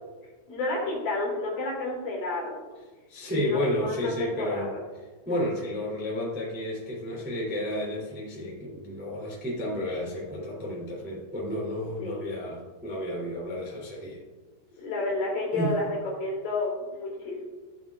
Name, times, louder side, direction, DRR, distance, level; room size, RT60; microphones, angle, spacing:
voice 1, 0.5-2.6 3.3-4.8 12.0-12.3 14.8-17.4, left 2 dB, 55° left, -3 dB, 3.6 m, -30 dB
voice 2, 3.1-4.7 5.2-14.2 15.5-15.8, left 1 dB, 5° right, -6 dB, 1.7 m, -31 dB
15.0 x 8.6 x 2.5 m, 1.3 s
omnidirectional pair, 5.5 m